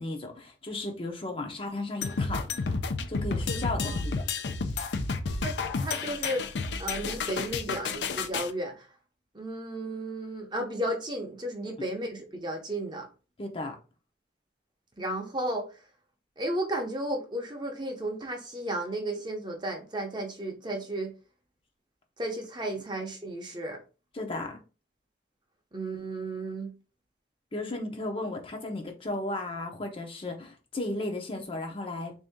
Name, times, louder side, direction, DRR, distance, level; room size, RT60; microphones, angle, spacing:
voice 1, 0.0-2.5 3.1-4.2 13.4-13.8 24.1-24.6 27.5-32.1, left 2 dB, 30° left, 0.6 m, -35 dB
sound 1, 2.0-8.5, left 4 dB, 75° left, 0.5 m, -31 dB
voice 2, 5.4-6.4 6.8-8.9 9.3-13.1 15.0-15.7 16.4-21.1 22.2-23.8 25.7-26.7, right 1 dB, 25° right, 0.7 m, -33 dB
3.6 x 2.7 x 3.5 m
head